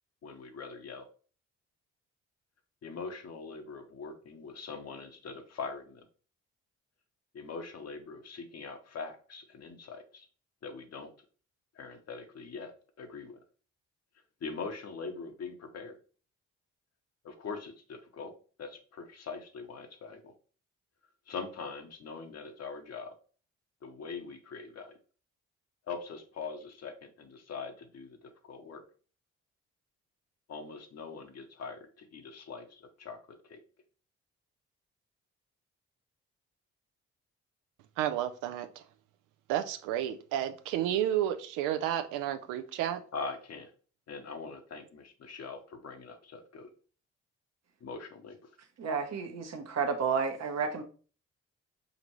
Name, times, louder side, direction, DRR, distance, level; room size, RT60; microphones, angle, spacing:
voice 1, 0.2-1.0 2.8-6.0 7.3-10.3 10.6-11.1 11.7-13.4 14.4-15.9 17.2-18.3 18.6-20.3 21.3-23.1 23.8-24.9 25.9-28.2 28.5-28.8 30.5-33.2 33.4-33.6 43.1-43.7 44.1-46.7 47.8-48.4, left 4 dB, 55° left, 5 dB, 1.0 m, -42 dB
voice 2, 38.0-38.8 39.5-43.0, right 11 dB, 85° right, 10 dB, 0.5 m, -31 dB
voice 3, 48.8-50.8, right 5 dB, 55° right, 6 dB, 0.9 m, -31 dB
5.1 x 2.5 x 3.0 m, 0.39 s
hypercardioid pair, 50°, 31 cm